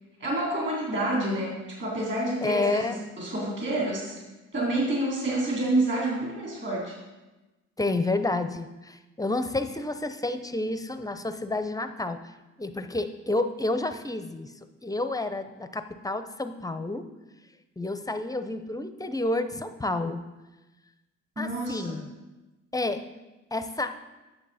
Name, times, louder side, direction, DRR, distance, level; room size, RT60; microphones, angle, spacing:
voice 1, 0.2-4.1 4.5-6.9 21.4-21.9, right 1 dB, 40° right, -5 dB, 3.3 m, -28 dB
voice 2, 2.4-3.0 7.8-12.2 12.6-14.5 14.8-17.1 17.8-20.2 21.4-22.1 22.7-23.1 23.5-24.0, left 2 dB, 10° left, 9 dB, 0.6 m, -30 dB
10.0 x 6.9 x 4.1 m, 1.1 s
cardioid pair, 90°, 30 cm